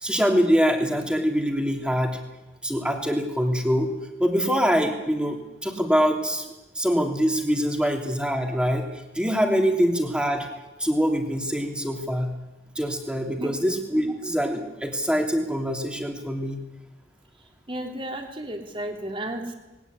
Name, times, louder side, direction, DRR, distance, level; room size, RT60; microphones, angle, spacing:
voice 1, 0.0-2.2 2.6-3.9 4.2-6.4 6.7-8.8 9.1-10.5 10.8-12.3 12.7-16.6, equal, 5° right, 3 dB, 3.1 m, -24 dB
voice 2, 17.7-19.5, right 1 dB, 30° right, 3 dB, 3.4 m, -33 dB
20.5 x 18.0 x 9.8 m, 1.0 s
head